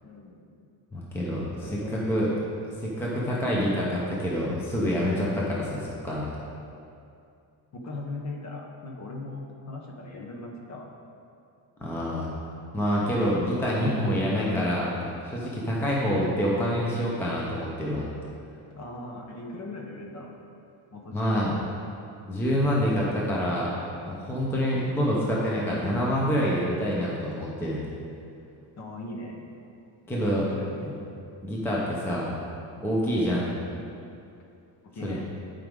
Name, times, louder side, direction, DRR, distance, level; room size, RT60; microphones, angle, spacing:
voice 1, 0.0-0.5 1.6-2.3 7.7-10.9 18.8-20.3 20.9-21.6 28.8-29.4 30.4-30.8 33.2-33.4 34.9-35.2, left 2 dB, 35° left, 0 dB, 0.9 m, -39 dB
voice 2, 0.9-2.3 2.8-6.3 11.8-12.3 12.7-15.0 15.2-18.1 21.1-21.5 22.3-23.7 24.1-27.8 30.1-30.5 30.8-30.9 31.4-32.3 32.8-33.4 35.0-35.1, equal, 5° left, -5 dB, 0.6 m, -27 dB
11.0 x 5.1 x 3.6 m, 2.6 s
cardioid pair, 180°, 49 cm